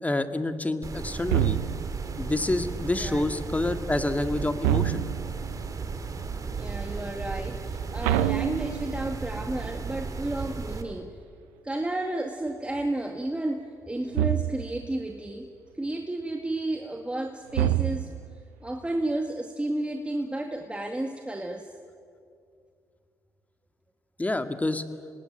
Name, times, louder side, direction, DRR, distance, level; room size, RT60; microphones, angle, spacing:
voice 1, 0.0-1.6 2.2-5.0 24.2-24.8, left 2 dB, 20° left, 8 dB, 2.0 m, -28 dB
sound 1, 0.8-10.8, right 4 dB, 45° right, 2.9 m, -35 dB
sound 2, 1.3-2.1 4.6-5.4 8.0-9.2 14.1-14.8 17.5-18.4, right 13 dB, 90° right, 0.7 m, -26 dB
voice 2, 6.5-11.2 11.6-15.5 15.7-18.1 18.6-21.7, right 1 dB, 15° right, 3 dB, 2.2 m, -32 dB
26.5 x 20.0 x 9.0 m, 2.3 s
hypercardioid pair, 50°, 8 cm